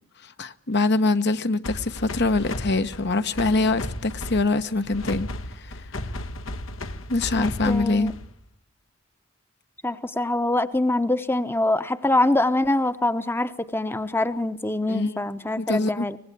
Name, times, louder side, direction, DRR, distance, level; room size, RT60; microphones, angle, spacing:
voice 1, 0.2-5.3 5.6-5.7 7.1-8.1 14.9-15.2 15.6-16.0, left 3 dB, 55° left, 1.2 m, -24 dB
sound 1, 1.6-8.4, left 1 dB, 80° left, 1.7 m, -35 dB
voice 2, 7.4-8.1 9.8-16.2, left 2 dB, 10° left, 1.0 m, -24 dB
24.5 x 20.0 x 8.5 m
head